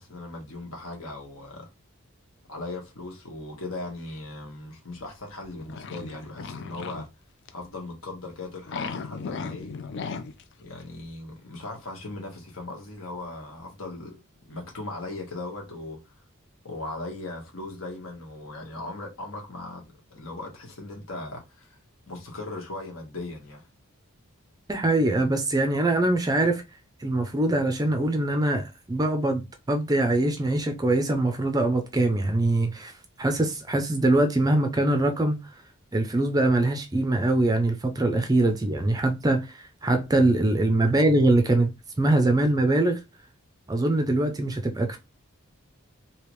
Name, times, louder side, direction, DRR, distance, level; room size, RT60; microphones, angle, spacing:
voice 1, 0.0-1.7 2.5-7.1 7.5-9.7 10.6-14.2 14.5-16.1 16.6-19.8 20.1-21.8 22.1-23.7 40.8-40.9, left 2 dB, 70° left, 1.5 m, -38 dB
sound 1, 5.0-7.1 7.5-7.7 8.5-10.4 10.8-10.9, left 5 dB, 55° left, 0.4 m, -36 dB
voice 2, 24.7-26.6 27.0-32.9 33.2-35.4 35.9-43.0 43.7-45.0, right 2 dB, 15° right, 0.5 m, -23 dB
3.3 x 2.8 x 3.1 m
head